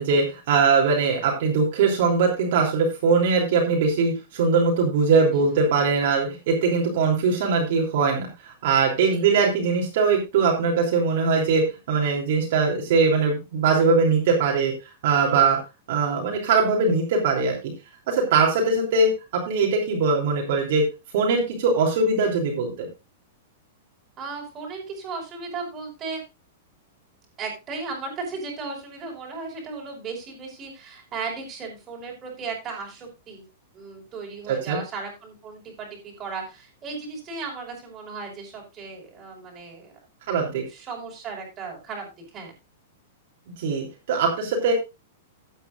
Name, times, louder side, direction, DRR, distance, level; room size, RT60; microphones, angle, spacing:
voice 1, 0.0-14.7 15.0-15.6 15.9-17.6 18.1-20.9 21.1-22.9 34.5-34.8 40.3-40.6 43.6-44.7, right 4 dB, 55° right, -1 dB, 3.3 m, -21 dB
voice 2, 24.2-26.2 27.4-33.5 33.7-40.0 40.7-42.5, right 4 dB, 20° right, -1 dB, 5.3 m, -36 dB
15.0 x 9.2 x 2.6 m, 0.26 s
supercardioid pair, 155°, 0 cm